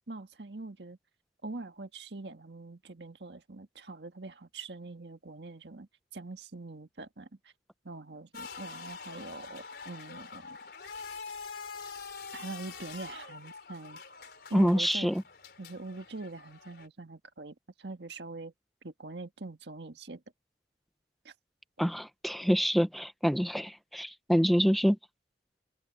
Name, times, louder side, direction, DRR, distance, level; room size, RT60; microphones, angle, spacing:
voice 1, 0.1-1.0 1.4-7.5 7.8-10.6 12.3-14.0 14.5-15.1 15.6-18.5 18.8-20.2 21.2-21.3, right 3 dB, 75° right, 1.7 m, -43 dB
sound 1, 8.3-16.9, left 5 dB, 60° left, 4.6 m, -45 dB
voice 2, 14.5-15.2 21.8-25.0, equal, ahead, 0.9 m, -26 dB
head